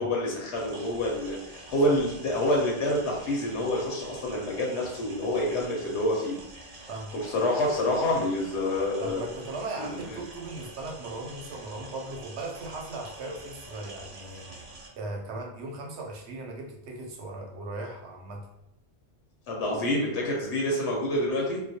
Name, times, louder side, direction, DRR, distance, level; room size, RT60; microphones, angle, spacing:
voice 1, 0.0-6.4 7.2-9.2 9.8-10.2 19.5-21.6, left 1 dB, 90° left, -2 dB, 1.0 m, -27 dB
sound 1, 0.5-14.9, right 2 dB, 50° right, 0.5 m, -46 dB
voice 2, 9.0-14.5 15.0-18.5, right 2 dB, 85° right, 0 dB, 0.9 m, -38 dB
2.3 x 2.1 x 2.6 m, 0.81 s
omnidirectional pair, 1.1 m